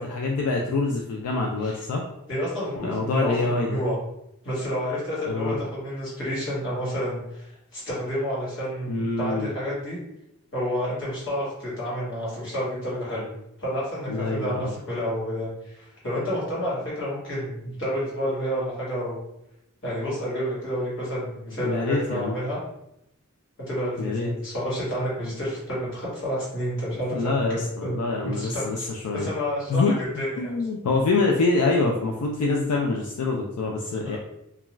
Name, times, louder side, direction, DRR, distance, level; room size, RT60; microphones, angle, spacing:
voice 1, 0.0-2.0 2.8-3.8 5.3-5.6 8.9-9.5 14.1-14.7 21.6-22.3 24.0-24.3 27.1-29.3 29.7-34.2, left 3 dB, 90° left, 0 dB, 0.4 m, -25 dB
voice 2, 2.3-3.9 4.4-10.0 10.5-13.3 13.6-19.2 19.8-22.6 23.7-27.9 28.2-28.8 29.1-30.5, equal, 60° left, -7 dB, 1.3 m, -30 dB
2.3 x 2.3 x 3.0 m, 0.83 s
head